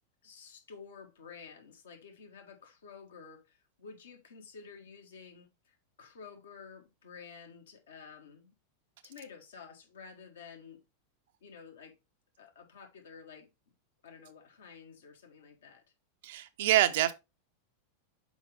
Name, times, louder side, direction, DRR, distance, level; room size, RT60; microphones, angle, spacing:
voice 1, 0.2-5.5 6.0-8.5 9.0-10.8 11.4-11.9 12.4-13.5 14.0-15.8, left 6 dB, 65° left, 1.5 m, -51 dB
voice 2, 16.2-17.1, right 13 dB, 55° right, 0.7 m, -26 dB
6.2 x 4.9 x 3.4 m
figure-of-eight pair, 90°, 0 cm